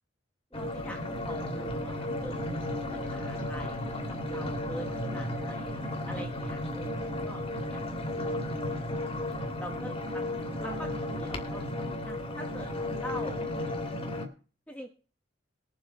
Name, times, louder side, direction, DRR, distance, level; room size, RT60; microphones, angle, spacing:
sound 1, 0.5-14.3, left 1 dB, 30° left, 2.3 m, -34 dB
voice 1, 0.5-8.5 9.6-10.3 10.6-11.6 12.1-13.8 14.7-14.9, equal, 5° left, 2 dB, 1.3 m, -44 dB
20.0 x 7.6 x 4.3 m, 0.38 s
head